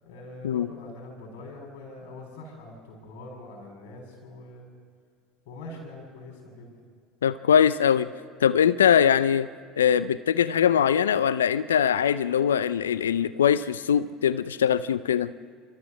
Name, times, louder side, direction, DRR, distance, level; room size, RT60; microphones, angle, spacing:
voice 1, 0.0-4.7 5.4-6.7, left 2 dB, 65° left, 1 dB, 6.6 m, -43 dB
voice 2, 7.2-8.1 8.4-9.5 9.8-15.3, left 8 dB, 80° left, 16 dB, 0.5 m, -22 dB
28.5 x 14.0 x 6.4 m, 2.1 s
hypercardioid pair, 70°, 0 cm